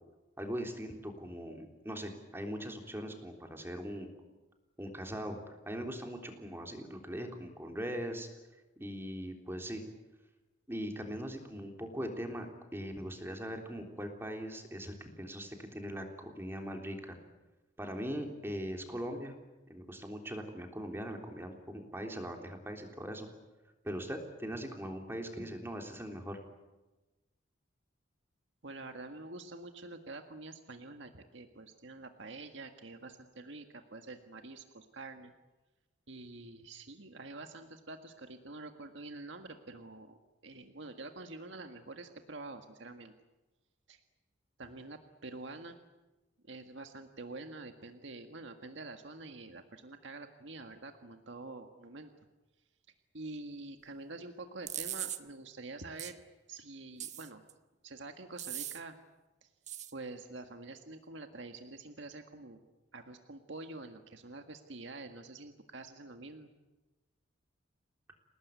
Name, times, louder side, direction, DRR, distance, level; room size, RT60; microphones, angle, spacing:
voice 1, 0.4-4.1 4.8-8.3 8.8-9.8 10.7-12.5 12.7-17.2 17.8-19.3 19.7-23.3 23.8-26.4, equal, 10° right, 3 dB, 3.6 m, -40 dB
voice 2, 28.6-33.7 33.9-35.3 36.1-40.1 40.4-43.1 43.9-44.0 44.6-45.8 46.4-52.1 53.1-56.2 56.5-57.4 57.8-58.9 59.4-59.5 59.9-62.6 62.9-66.5, right 2 dB, 70° right, 6 dB, 1.7 m, -47 dB
sound 1, 54.7-55.2 56.0-56.1 57.0-57.5 58.4-58.8 59.7-59.9, right 11 dB, 35° right, 1.2 m, -39 dB
29.0 x 19.0 x 9.5 m, 1.1 s
head